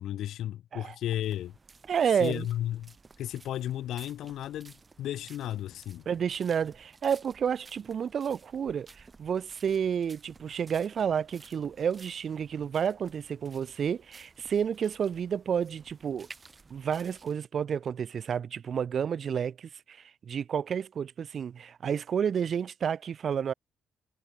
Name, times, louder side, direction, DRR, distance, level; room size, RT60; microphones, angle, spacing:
voice 1, 0.0-1.6 2.2-6.0, left 12 dB, 80° left, 2.3 m, -34 dB
sound 1, 1.2-17.3, right 4 dB, 30° right, 5.9 m, -55 dB
voice 2, 1.9-2.5 6.0-16.3 16.7-23.5, right 7 dB, 55° right, 1.5 m, -30 dB
cardioid pair, 90°, 0 cm